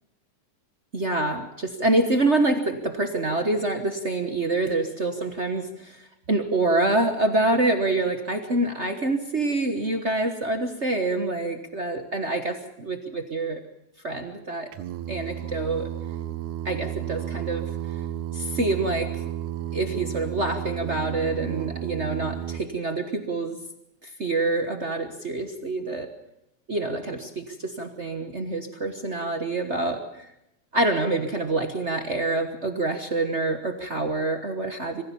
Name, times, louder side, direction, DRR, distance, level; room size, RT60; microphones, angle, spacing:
voice 1, 0.9-13.6 14.0-14.7 15.1-15.9 16.6-17.6 18.3-19.2 19.7-23.6 24.0-26.1 26.7-30.3 30.7-35.0, right 2 dB, 50° right, 7 dB, 0.8 m, -26 dB
Singing, 14.7-22.6, right 11 dB, 90° right, 2.3 m, -32 dB
24.0 x 15.5 x 7.1 m, 0.85 s
omnidirectional pair, 3.3 m